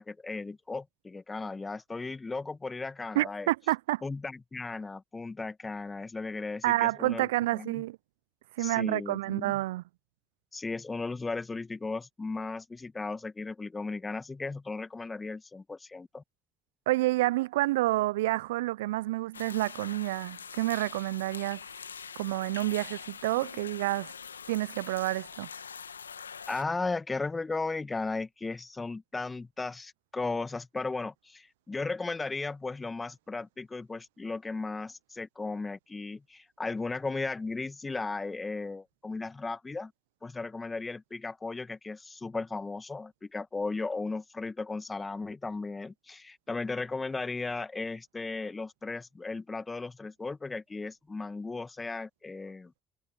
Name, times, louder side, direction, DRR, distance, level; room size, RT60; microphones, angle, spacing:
voice 1, 0.0-3.5 4.0-7.8 8.6-9.6 10.5-16.2 26.5-39.9 40.2-52.7, left 3 dB, 25° left, 2.3 m, -36 dB
voice 2, 3.1-4.0 6.6-8.0 8.6-9.8 16.9-21.6 22.2-24.1 24.5-25.5, right 18 dB, 75° right, 0.6 m, -29 dB
sound 1, 19.3-26.6, left 6 dB, 85° left, 1.8 m, -44 dB
figure-of-eight pair, 50°, 0 cm